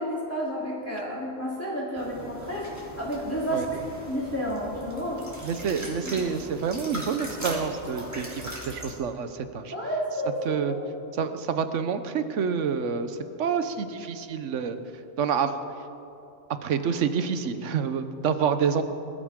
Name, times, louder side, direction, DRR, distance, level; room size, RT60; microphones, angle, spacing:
voice 1, 0.0-5.3 6.1-6.2 9.7-10.8, equal, 10° left, -7 dB, 3.2 m, -31 dB
sound 1, 2.0-8.9, equal, 15° right, 2.9 m, -39 dB
voice 2, 5.4-9.7 10.5-10.7 11.1-14.8 15.2-15.5 16.6-18.8, right 6 dB, 75° right, 10 dB, 1.2 m, -28 dB
21.5 x 13.5 x 3.7 m, 2.9 s
omnidirectional pair, 1.3 m